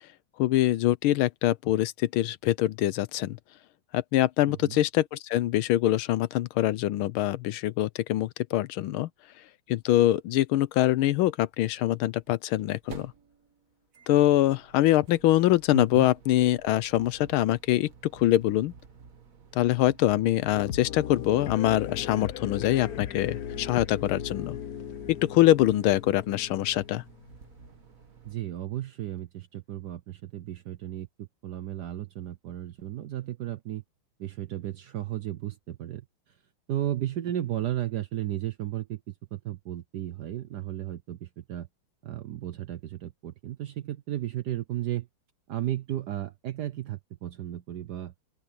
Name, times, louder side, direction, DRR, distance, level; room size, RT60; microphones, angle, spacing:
voice 1, 0.4-3.4 3.9-9.1 9.7-13.1 14.1-18.7 19.5-24.6 25.1-27.0, left 14 dB, 80° left, 1.4 m, -24 dB
voice 2, 4.5-4.8 15.7-16.1 28.2-33.8 34.2-36.0 36.7-41.7 42.0-45.1 45.5-48.1, right 12 dB, 65° right, 1.0 m, -34 dB
sound 1, 9.8-9.9 10.0-10.1 12.0-28.3, right 5 dB, 40° right, 1.9 m, -52 dB
sound 2, 20.6-27.5, left 9 dB, 55° left, 1.1 m, -37 dB
open air
omnidirectional pair, 2.4 m